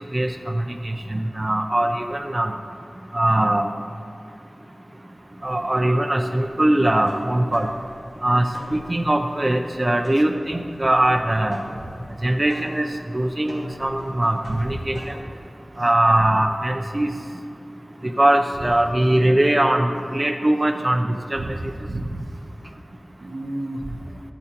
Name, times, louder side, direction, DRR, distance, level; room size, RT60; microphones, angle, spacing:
voice 1, 0.1-2.5 3.1-3.7 5.4-7.7 8.2-8.4 8.7-11.6 12.2-12.9 13.1-15.0 15.8-17.1 18.2-21.0 21.3-21.4, right 1 dB, 30° right, 4 dB, 0.5 m, -21 dB
sound 1, 6.8-15.2, left 1 dB, 85° left, 2.1 m, -41 dB
voice 2, 14.5-15.0 21.4-22.3 23.2-24.1, right 1 dB, 75° right, 6 dB, 0.6 m, -31 dB
13.5 x 8.6 x 2.9 m, 2.4 s
wide cardioid pair, 65°, 0 cm